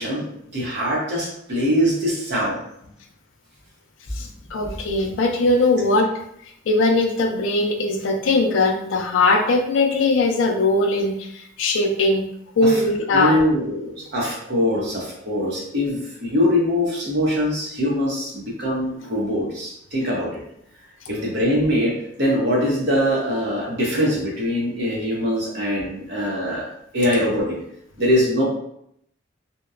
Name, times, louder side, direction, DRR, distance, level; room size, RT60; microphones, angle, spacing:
voice 1, 0.0-2.6 12.6-12.8 13.1-20.3 21.1-26.6 26.9-27.5 28.0-28.4, equal, 55° right, -4 dB, 0.8 m, -22 dB
voice 2, 4.1-6.1 6.7-12.2 12.6-13.4, left 2 dB, 65° left, 3 dB, 0.4 m, -20 dB
2.8 x 2.1 x 2.4 m, 0.74 s
head